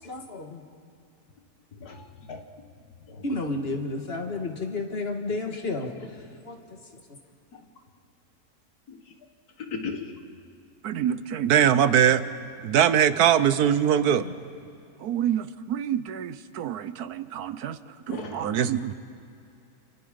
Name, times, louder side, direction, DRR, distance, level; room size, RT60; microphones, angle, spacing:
voice 1, 0.1-0.6 3.2-6.6 14.2-14.3, left 2 dB, 40° left, 3 dB, 2.0 m, -32 dB
voice 2, 1.8-2.4 3.1-3.2 8.9-9.0 9.6-10.2 18.1-18.6, left 4 dB, 80° left, 5 dB, 2.1 m, -37 dB
voice 3, 10.8-12.2 12.6-14.3 15.0-17.8 18.1-19.0, right 9 dB, 80° right, 13 dB, 1.3 m, -23 dB
29.5 x 27.5 x 5.3 m, 2.8 s
omnidirectional pair, 1.6 m